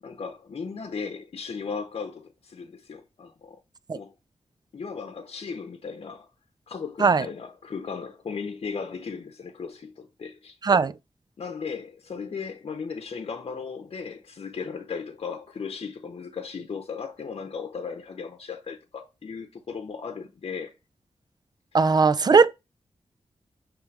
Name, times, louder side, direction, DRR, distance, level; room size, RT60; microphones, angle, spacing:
voice 1, 0.0-3.6 3.9-4.1 4.7-6.3 6.7-10.6 11.4-20.7, left 5 dB, 60° left, 0.8 m, -36 dB
voice 2, 21.7-22.5, right 4 dB, 40° right, 0.4 m, -18 dB
6.2 x 3.3 x 4.6 m
wide cardioid pair, 100°, 11 cm